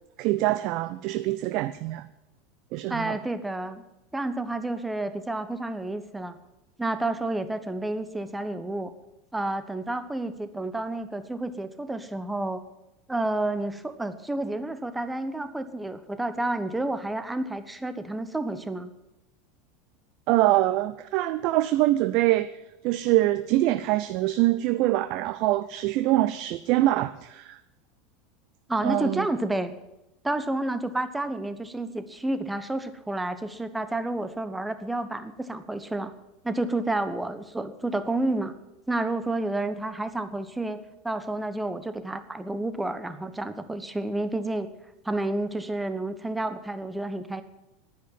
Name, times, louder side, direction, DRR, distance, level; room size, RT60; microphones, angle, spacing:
voice 1, 0.2-2.1 2.7-3.2 20.3-22.5 22.8-27.6 28.8-29.3, right 16 dB, 50° right, 0.5 m, -24 dB
voice 2, 2.9-3.8 4.1-6.4 6.8-8.9 9.3-12.6 13.1-18.9 28.7-29.7 30.2-36.1 36.4-38.5 38.9-40.8 41.0-44.7 45.0-47.4, right 2 dB, 10° right, 1.2 m, -30 dB
11.0 x 9.8 x 9.6 m
figure-of-eight pair, 80°, 0 cm